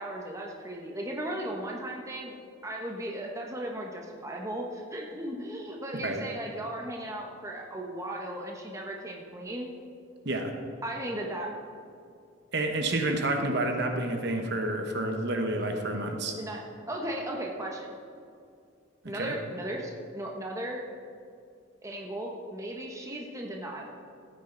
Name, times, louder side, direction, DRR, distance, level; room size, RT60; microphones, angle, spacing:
voice 1, 0.0-2.4 2.6-9.7 10.8-11.5 16.3-16.6 16.9-18.0 19.1-20.8 21.8-23.9, right 1 dB, 15° right, -1 dB, 1.0 m, -36 dB
voice 2, 12.5-16.3 19.1-19.3, right 2 dB, 55° right, 4 dB, 1.2 m, -29 dB
14.5 x 9.1 x 3.9 m, 2.4 s
head